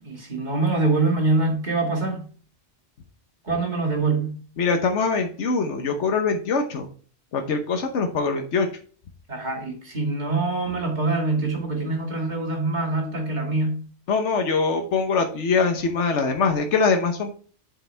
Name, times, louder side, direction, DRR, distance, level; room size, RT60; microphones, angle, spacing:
voice 1, 0.0-2.3 3.5-4.4 9.3-13.8, right 3 dB, 40° right, 2.1 m, -24 dB
voice 2, 4.6-6.9 7.3-8.7 14.1-17.4, left 4 dB, 80° left, 1.3 m, -23 dB
7.9 x 7.0 x 3.4 m
omnidirectional pair, 1.2 m